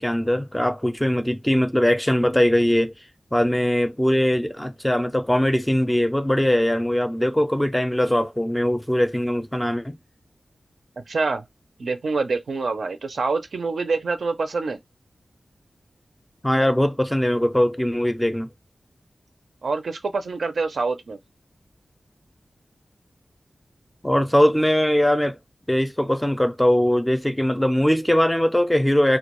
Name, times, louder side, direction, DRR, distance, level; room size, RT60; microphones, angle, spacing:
voice 1, 0.0-2.9 3.3-10.0 16.4-18.5 24.0-25.4 25.7-29.2, left 1 dB, 10° left, 0.4 m, -21 dB
voice 2, 11.1-11.4 11.8-14.8 19.6-21.2, right 4 dB, 85° right, 0.4 m, -26 dB
2.2 x 2.2 x 2.9 m
wide cardioid pair, 70°, 0 cm